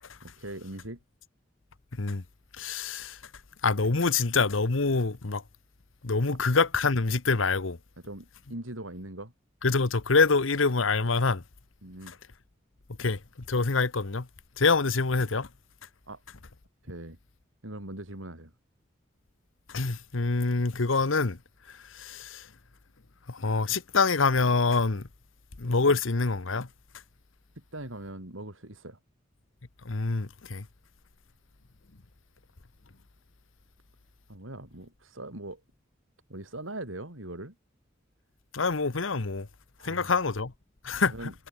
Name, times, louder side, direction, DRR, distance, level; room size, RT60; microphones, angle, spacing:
voice 1, 0.2-1.0 3.8-3.9 6.2-6.4 8.0-9.3 11.8-12.2 16.1-16.2 16.8-17.2 17.6-18.5 25.9-26.0 27.6-29.0 34.3-35.6 36.3-37.6 39.8-40.2 40.9-41.3, right 1 dB, 85° right, 5.3 m, -41 dB
voice 2, 2.6-3.2 3.6-5.4 6.0-7.8 9.6-11.4 13.0-13.2 13.5-14.3 14.6-15.5 19.7-21.4 21.9-22.4 23.3-25.1 25.6-26.7 29.8-30.6 38.5-39.5 39.8-40.5 40.8-41.1, left 4 dB, 85° left, 1.2 m, -25 dB
head